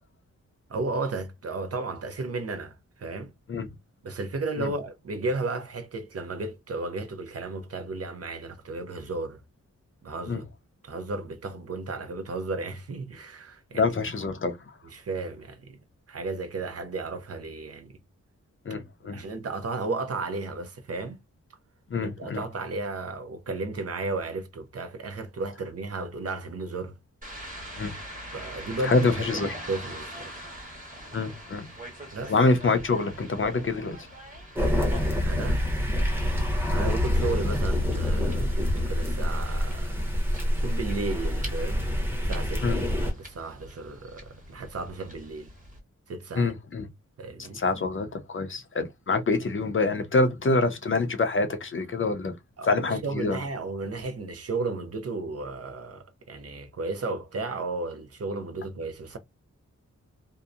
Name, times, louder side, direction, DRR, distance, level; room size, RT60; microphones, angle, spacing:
voice 1, 0.7-3.3 4.0-9.4 10.0-10.5 10.8-13.8 14.9-15.8 16.1-17.9 19.1-21.2 21.9-27.0 28.3-30.3 32.1-32.3 35.2-35.7 36.6-40.0 40.6-41.9 42.3-45.5 46.1-46.5 47.2-47.6 52.6-59.2, right 3 dB, 50° right, 0.6 m, -34 dB
voice 2, 13.7-14.8 18.6-19.2 21.9-22.4 27.7-27.9 28.8-29.5 31.1-31.7 32.3-34.1 42.6-42.8 46.3-46.9 47.4-52.3 52.6-53.4, left 3 dB, 40° left, 0.5 m, -26 dB
sound 1, 27.2-45.8, equal, 25° right, 1.1 m, -44 dB
sound 2, 34.6-43.1, left 1 dB, 5° right, 0.8 m, -26 dB
2.7 x 2.0 x 2.4 m
wide cardioid pair, 85°, 30 cm